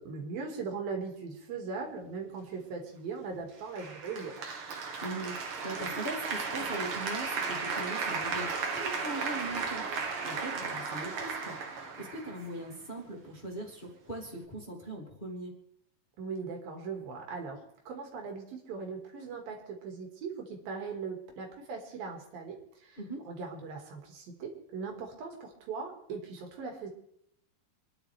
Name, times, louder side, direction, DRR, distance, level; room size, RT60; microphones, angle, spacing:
voice 1, 0.0-4.5 16.2-23.0 23.3-26.9, right 5 dB, 80° right, 2 dB, 4.1 m, -39 dB
Applause, 3.8-12.8, right 5 dB, 50° right, 1.8 m, -35 dB
voice 2, 5.0-15.5 23.0-23.2, right 1 dB, 15° left, -3 dB, 2.4 m, -40 dB
27.5 x 10.5 x 3.5 m, 0.73 s
omnidirectional pair, 4.1 m